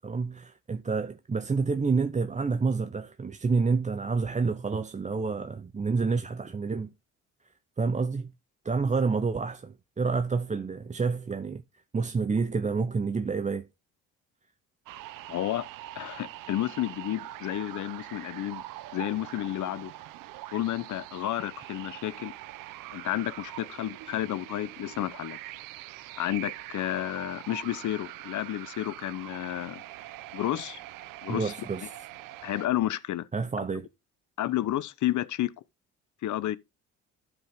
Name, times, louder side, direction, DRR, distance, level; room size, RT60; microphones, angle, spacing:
voice 1, 0.0-6.9 7.8-8.3 8.6-11.6 11.9-13.7 31.3-31.9 33.3-33.9, right 4 dB, 20° right, 0.7 m, -28 dB
sound 1, 14.9-32.7, right 15 dB, 75° right, 0.7 m, -43 dB
voice 2, 15.3-15.7 16.0-18.6 18.9-19.9 20.5-22.3 22.9-25.4 26.2-29.8 30.3-30.8 31.2-31.5 32.4-33.3 34.4-35.5 36.2-36.6, left 13 dB, 60° left, 0.8 m, -31 dB
12.0 x 5.2 x 3.6 m
supercardioid pair, 75°, 33 cm